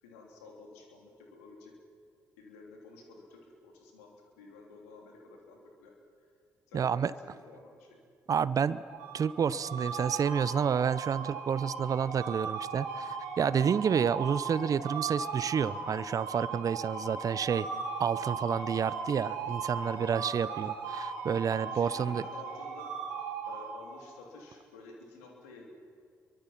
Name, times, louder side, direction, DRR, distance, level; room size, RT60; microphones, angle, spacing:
voice 1, 0.0-1.7 2.4-6.0 6.7-8.0 13.4-13.6 20.4-20.6 21.6-22.9 23.4-25.7, left 3 dB, 85° left, 0 dB, 3.2 m, -51 dB
voice 2, 6.7-7.1 8.3-8.8 9.1-17.7 18.0-22.2, right 7 dB, 50° right, 17 dB, 0.7 m, -29 dB
sound 1, 8.9-24.2, right 5 dB, 85° right, 2.9 m, -38 dB
29.5 x 23.5 x 5.9 m, 2.3 s
hypercardioid pair, 40°, 8 cm